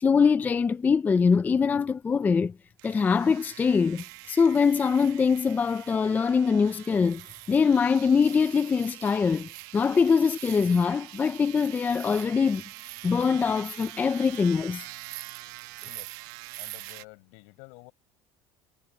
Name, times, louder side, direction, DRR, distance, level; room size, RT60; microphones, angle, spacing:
voice 1, 0.0-2.5 2.8-7.2 7.5-12.6 13.0-14.8, left 5 dB, 15° left, 0.4 m, -23 dB
sound 1, 2.8-17.1, right 20 dB, 85° right, 1.3 m, -44 dB
voice 2, 15.8-16.2 16.6-17.9, left 32 dB, 80° left, 7.0 m, -50 dB
cardioid pair, 155°, 11 cm